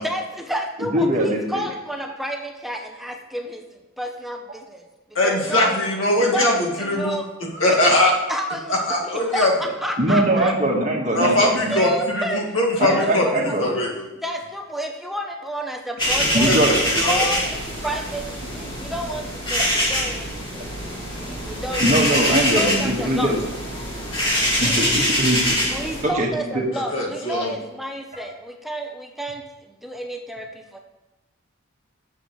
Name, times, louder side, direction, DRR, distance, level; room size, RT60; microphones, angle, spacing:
voice 1, 0.0-4.9 5.2-5.8 6.2-6.5 6.8-7.3 7.7-7.9 8.3-8.7 9.3-10.5 11.7-12.4 12.9-13.6 14.2-16.5 17.0-20.7 21.2-23.3 24.6-24.8 25.7-30.8, right 1 dB, ahead, 3 dB, 0.7 m, -30 dB
voice 2, 0.8-1.6 10.0-11.9 12.8-13.7 16.3-16.8 21.8-23.4 24.6-25.6 26.0-26.7, right 1 dB, 35° right, 0 dB, 1.5 m, -21 dB
voice 3, 5.2-7.2 7.5-8.1 8.7-9.5 11.1-13.2 13.6-14.1 16.5-16.6 16.9-17.2 26.7-27.5, left 1 dB, 70° left, -2 dB, 2.0 m, -21 dB
sound 1, 16.0-26.0, equal, 25° left, 2.5 m, -24 dB
15.0 x 6.9 x 3.1 m, 1.1 s
head